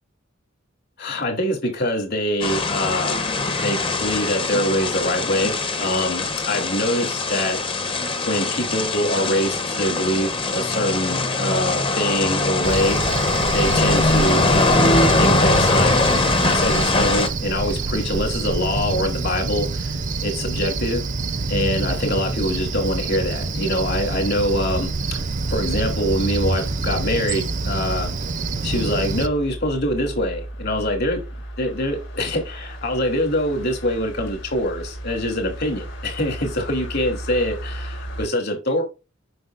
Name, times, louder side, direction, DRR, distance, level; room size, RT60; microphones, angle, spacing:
voice 1, 1.0-7.6 8.2-16.0 16.5-21.0 21.5-25.2 25.5-28.1 28.6-31.2 31.6-38.8, left 1 dB, 55° left, 2.8 m, -24 dB
sound 1, 2.4-17.3, left 2 dB, 25° left, 0.8 m, -22 dB
Cricket, 12.6-29.3, right 3 dB, 40° right, 0.6 m, -26 dB
sound 2, 22.2-38.3, right 1 dB, 85° left, 3.7 m, -35 dB
7.8 x 5.9 x 2.5 m
head